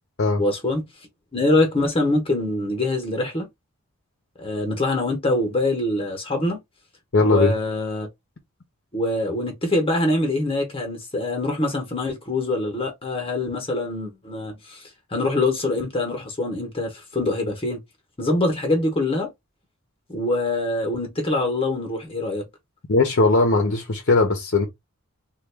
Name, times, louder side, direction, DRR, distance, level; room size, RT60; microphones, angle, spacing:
voice 1, 0.4-0.8 1.3-3.5 4.4-6.6 7.2-8.1 8.9-17.8 18.2-19.3 20.1-22.5, left 2 dB, 25° left, 0.9 m, -24 dB
voice 2, 7.1-7.5 22.9-24.7, left 3 dB, 55° left, 0.7 m, -19 dB
3.4 x 2.3 x 3.3 m
head